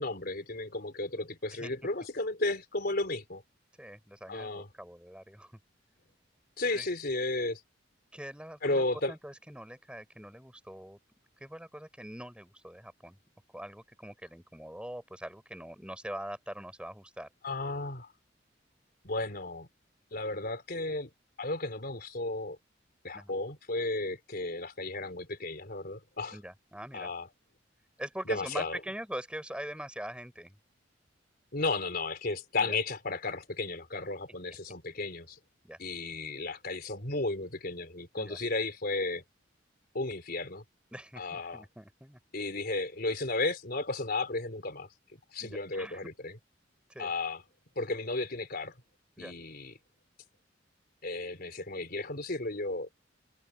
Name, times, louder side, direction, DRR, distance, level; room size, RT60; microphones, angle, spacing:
voice 1, 0.0-3.4 4.3-4.7 6.6-7.6 8.6-9.1 17.4-18.1 19.0-19.7 20.1-21.1 21.4-22.6 23.0-26.4 26.9-27.3 28.3-28.8 31.5-35.4 35.8-39.2 39.9-40.6 41.2-41.6 42.3-44.9 45.3-46.3 47.0-47.4 47.8-48.7 49.2-49.7 51.0-52.9, left 2 dB, 55° left, 3.9 m, -34 dB
voice 2, 3.8-5.6 6.7-6.9 8.1-11.0 11.4-13.2 13.5-17.3 23.1-23.3 26.3-27.1 28.0-30.6 32.5-32.8 35.6-35.8 38.2-38.4 40.9-42.2 45.4-46.1 46.9-47.1 49.2-49.3, right 1 dB, 5° right, 5.8 m, -43 dB
head